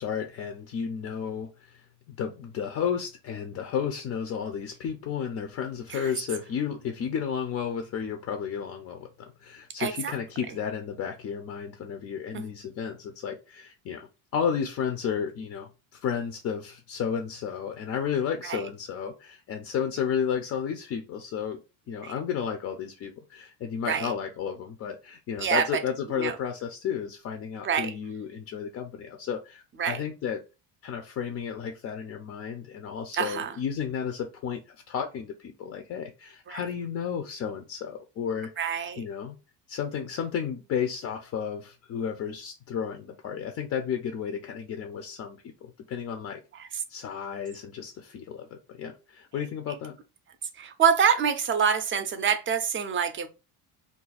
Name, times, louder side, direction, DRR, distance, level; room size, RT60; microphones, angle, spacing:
voice 1, 0.0-21.6 21.9-30.4 30.8-39.3 39.7-46.4 46.9-50.0, left 7 dB, 40° left, 0.4 m, -33 dB
voice 2, 9.8-10.1 12.3-12.4 18.4-18.6 22.0-22.1 23.9-24.1 25.4-25.6 26.2-26.3 27.6-27.9 29.8-30.0 33.1-33.5 36.5-36.6 38.6-39.0 50.6-53.3, right 7 dB, 30° right, 0.5 m, -26 dB
2.4 x 2.2 x 4.0 m
cardioid pair, 130°, 41 cm